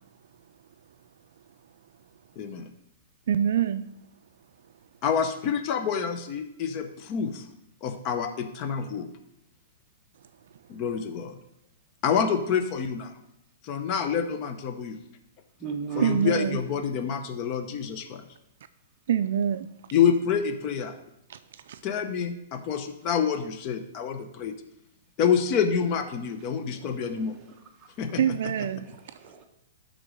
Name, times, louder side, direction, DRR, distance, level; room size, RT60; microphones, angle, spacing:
voice 1, 2.4-2.7 5.0-7.4 7.8-9.1 10.7-11.4 12.0-13.1 13.6-15.0 16.0-18.2 19.9-20.9 21.8-24.5 25.2-27.4 28.0-28.2, left 7 dB, 30° left, 0.7 m, -27 dB
voice 2, 3.3-3.8 16.0-16.6 19.1-19.7 21.3-21.8 28.2-29.0, right 9 dB, 65° right, 0.3 m, -25 dB
voice 3, 15.6-16.3 26.5-27.9 28.8-29.5, right 5 dB, 15° right, 1.1 m, -38 dB
11.0 x 3.8 x 5.2 m
hypercardioid pair, 160°, 0 cm